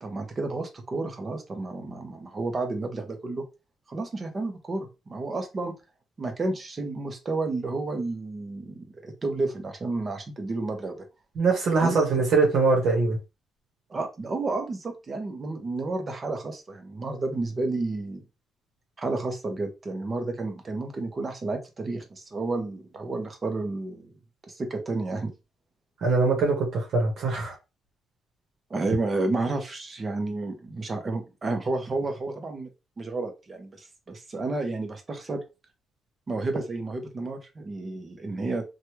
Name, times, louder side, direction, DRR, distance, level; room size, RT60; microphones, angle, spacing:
voice 1, 0.0-3.4 3.9-5.7 6.2-11.0 11.8-12.0 13.9-18.2 19.0-24.1 24.5-25.3 28.7-32.7 33.0-35.4 36.3-38.6, right 3 dB, 35° right, 0.9 m, -31 dB
voice 2, 11.4-13.2 26.0-27.5, right 4 dB, 70° right, 1.1 m, -22 dB
3.1 x 2.4 x 2.9 m
cardioid pair, 90°, 0 cm